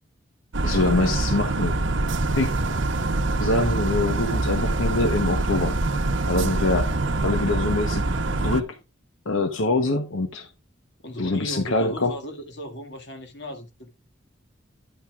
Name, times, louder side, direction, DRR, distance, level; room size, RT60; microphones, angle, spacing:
sound 1, 0.5-8.6, right 2 dB, 75° right, 0.8 m, -24 dB
voice 1, 0.6-1.8 2.3-2.5 3.4-5.8 6.3-8.0 8.4-8.8 9.3-10.5 11.2-12.1, left 2 dB, 85° left, 1.0 m, -24 dB
voice 2, 11.0-13.9, equal, 60° left, 2.0 m, -36 dB
11.0 x 8.7 x 2.3 m
head